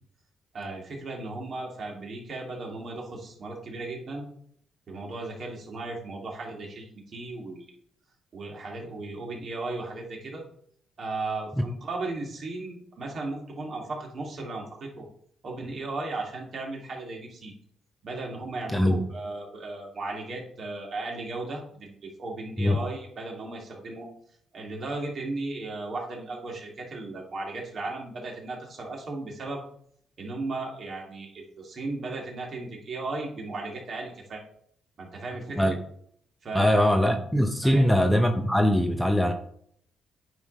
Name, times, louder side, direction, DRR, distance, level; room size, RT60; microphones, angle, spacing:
voice 1, 0.5-4.3 4.9-7.7 8.3-10.4 11.0-15.1 15.4-17.5 18.0-24.1 24.5-29.6 30.2-34.4 35.0-35.7 36.4-36.9 37.6-37.9, right 2 dB, 50° right, -1 dB, 2.3 m, -36 dB
voice 2, 18.7-19.0 22.6-22.8 35.5-35.8 36.5-39.3, equal, 5° left, 5 dB, 0.7 m, -22 dB
9.2 x 3.3 x 5.2 m, 0.65 s
cardioid pair, 90°, 0 cm